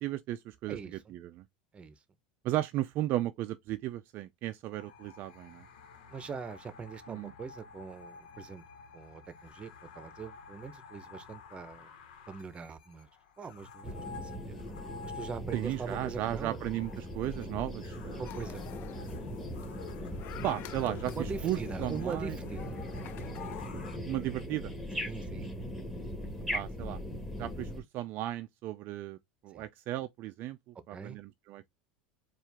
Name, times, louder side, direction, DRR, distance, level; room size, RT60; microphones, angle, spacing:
voice 1, 0.0-1.4 2.4-5.7 7.1-7.3 15.5-18.2 20.4-22.4 24.1-24.7 26.5-27.0 27.4-29.2 29.4-31.7, right 14 dB, 50° right, 0.4 m, -35 dB
voice 2, 0.7-1.1 1.7-2.0 6.1-8.6 8.9-9.7 10.0-11.9 12.3-13.1 13.4-14.6 15.0-16.6 18.2-18.8 21.1-22.8 24.9-25.5 29.5-29.6 30.9-31.2, right 5 dB, 25° right, 0.8 m, -42 dB
sound 1, 4.7-24.0, left 5 dB, 75° left, 1.2 m, -52 dB
sound 2, 13.8-27.8, equal, 5° left, 1.6 m, -40 dB
sound 3, 18.2-23.7, left 13 dB, 50° left, 0.3 m, -48 dB
4.4 x 2.5 x 3.5 m
hypercardioid pair, 100°, 4 cm